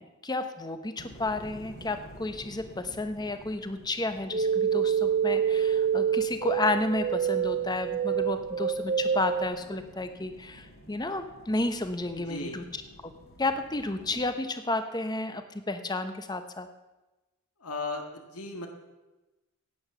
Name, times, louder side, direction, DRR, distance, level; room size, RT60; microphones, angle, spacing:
voice 1, 0.0-13.1 13.4-16.7, left 2 dB, 20° left, 9 dB, 0.8 m, -32 dB
sound 1, 1.0-14.3, equal, 45° left, 4.4 m, -51 dB
sound 2, 4.3-9.5, right 7 dB, 35° right, 0.6 m, -27 dB
voice 2, 12.1-12.6 17.6-18.7, left 3 dB, 85° left, 4 dB, 1.8 m, -36 dB
16.5 x 9.4 x 6.9 m, 1.1 s
head